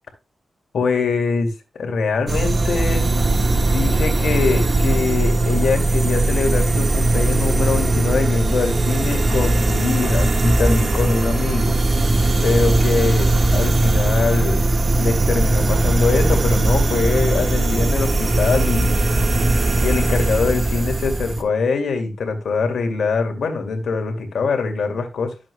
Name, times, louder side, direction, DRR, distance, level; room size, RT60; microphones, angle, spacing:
voice 1, 0.7-3.1 3.7-11.7 12.4-19.0 19.8-25.3, left 4 dB, 80° left, 4 dB, 2.3 m, -23 dB
sound 1, 2.3-21.4, right 2 dB, 50° right, 1.5 m, -19 dB
11.5 x 7.5 x 2.2 m, 0.26 s
cardioid pair, 55°, 0 cm